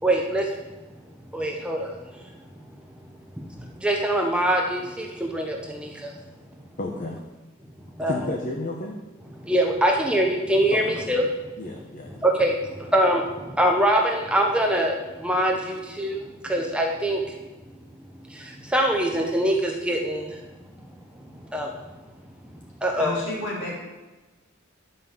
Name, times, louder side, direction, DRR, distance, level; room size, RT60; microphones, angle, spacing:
voice 1, 0.0-0.5 1.3-2.0 3.4-6.1 8.0-8.2 9.4-11.2 12.2-17.2 18.3-20.4 21.5-21.7 22.8-23.2, right 1 dB, 5° right, 1 dB, 0.9 m, -24 dB
voice 2, 6.8-7.2 8.1-9.0 10.7-12.3, left 2 dB, 40° left, 1 dB, 1.0 m, -33 dB
voice 3, 23.0-23.7, left 1 dB, 65° left, -4 dB, 4.0 m, -31 dB
11.0 x 5.5 x 7.1 m, 1.2 s
head